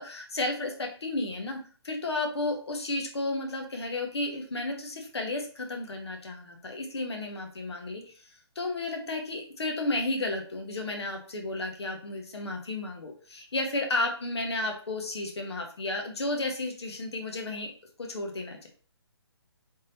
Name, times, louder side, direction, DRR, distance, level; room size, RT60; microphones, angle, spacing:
voice 1, 0.0-1.6 1.8-8.1 8.5-17.7 18.0-18.7, left 2 dB, 70° left, 3 dB, 1.3 m, -32 dB
3.9 x 3.7 x 2.7 m, 0.41 s
hypercardioid pair, 155°, 14 cm